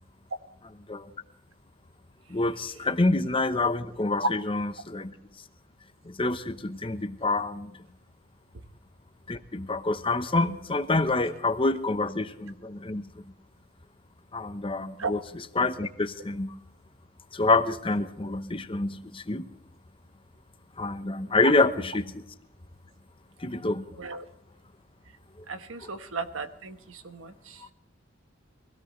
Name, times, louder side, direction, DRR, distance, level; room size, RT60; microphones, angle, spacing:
voice 1, 2.3-5.1 6.0-7.7 9.3-13.1 14.3-16.5 17.3-19.5 20.8-22.2 23.4-23.9 25.8-25.9, left 2 dB, 25° left, 10 dB, 0.9 m, -27 dB
voice 2, 25.5-27.6, right 4 dB, 90° right, 9 dB, 1.3 m, -35 dB
22.5 x 17.0 x 3.2 m, 0.81 s
head